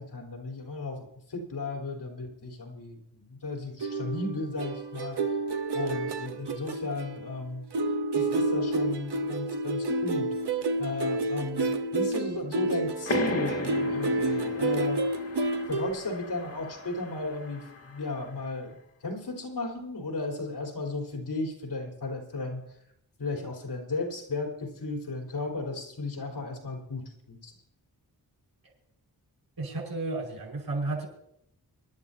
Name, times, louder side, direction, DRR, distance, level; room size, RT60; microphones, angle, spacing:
voice 1, 0.0-5.2 5.7-7.6 8.1-10.3 10.8-15.0 15.7-18.7 19.0-22.6 23.2-27.5, left 3 dB, 90° left, -1 dB, 4.1 m, -35 dB
sound 1, 3.8-7.4 7.7-15.9, right 2 dB, 85° right, 1.1 m, -29 dB
sound 2, 13.1-18.3, left 3 dB, 35° left, 1.4 m, -37 dB
voice 2, 29.6-31.1, right 2 dB, 65° right, 1 dB, 5.3 m, -32 dB
24.5 x 11.5 x 2.8 m, 0.75 s
wide cardioid pair, 75°, 39 cm